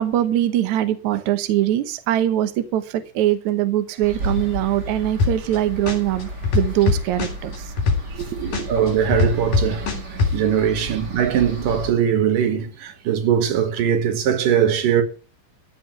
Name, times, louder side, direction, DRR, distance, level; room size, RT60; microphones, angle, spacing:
voice 1, 0.0-7.7 8.1-8.7, right 12 dB, 70° right, 2.3 m, -22 dB
sound 1, 4.0-11.9, right 1 dB, 35° right, 2.7 m, -33 dB
sound 2, 5.2-5.6 5.9-8.2 8.5-10.3, left 4 dB, 80° left, 4.8 m, -20 dB
voice 2, 8.7-15.0, right 8 dB, 90° right, 3.2 m, -21 dB
14.5 x 5.2 x 9.0 m
omnidirectional pair, 3.7 m